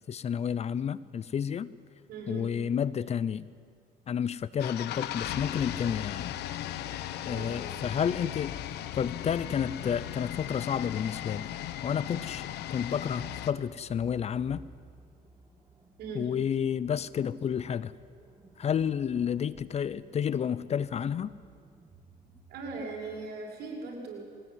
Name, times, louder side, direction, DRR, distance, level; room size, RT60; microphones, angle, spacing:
voice 1, 0.1-1.7 2.3-3.4 4.1-6.3 7.2-8.6 8.9-11.5 11.8-14.6 16.1-17.9 18.6-21.3, left 8 dB, 40° left, 18 dB, 0.6 m, -30 dB
voice 2, 2.1-2.5 7.3-7.6 16.0-16.3 22.5-24.2, right 4 dB, 70° right, -1 dB, 6.4 m, -39 dB
sound 1, 4.6-13.5, left 12 dB, 80° left, 1.1 m, -37 dB
sound 2, 11.8-22.9, right 2 dB, 20° right, 2.4 m, -55 dB
21.5 x 18.5 x 9.6 m, 2.1 s
cardioid pair, 110°, 17 cm